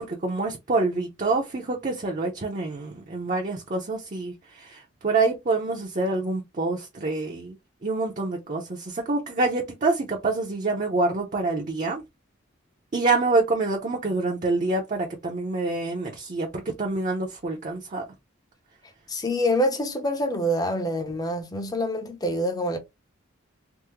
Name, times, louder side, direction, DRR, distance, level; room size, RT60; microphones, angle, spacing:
voice 1, 0.0-7.6 7.8-12.0 12.9-18.0, right 3 dB, 40° right, 0.6 m, -26 dB
voice 2, 19.1-22.8, equal, 20° left, 0.6 m, -26 dB
3.5 x 2.0 x 3.0 m
head